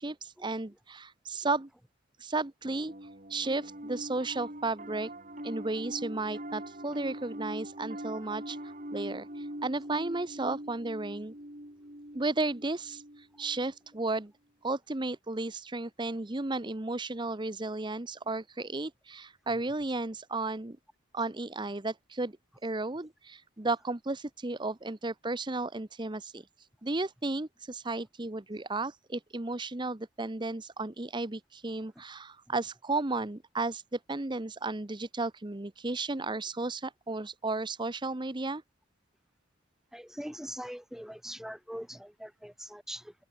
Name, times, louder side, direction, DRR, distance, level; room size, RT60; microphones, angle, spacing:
voice 1, 0.0-1.7 2.2-5.1 5.4-11.3 12.1-14.3 14.6-20.8 21.1-22.4 22.6-38.6, right 2 dB, 25° right, 0.9 m, -34 dB
Piano, 2.6-14.1, right 1 dB, 40° right, 7.5 m, -43 dB
voice 2, 39.9-43.1, equal, ahead, 3.2 m, -42 dB
head